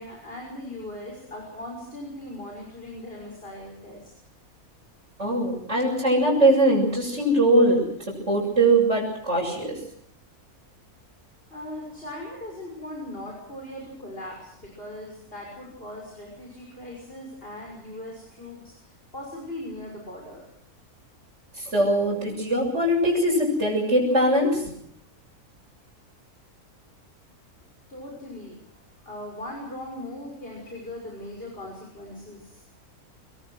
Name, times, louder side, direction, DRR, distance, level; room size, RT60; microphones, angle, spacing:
voice 1, 0.0-4.1 11.5-20.5 27.9-28.6 29.0-32.6, left 1 dB, 40° left, -1 dB, 6.4 m, -39 dB
voice 2, 5.2-9.8 21.5-24.7, right 1 dB, 50° right, -6 dB, 7.8 m, -21 dB
27.0 x 21.0 x 6.4 m, 0.74 s
omnidirectional pair, 1.6 m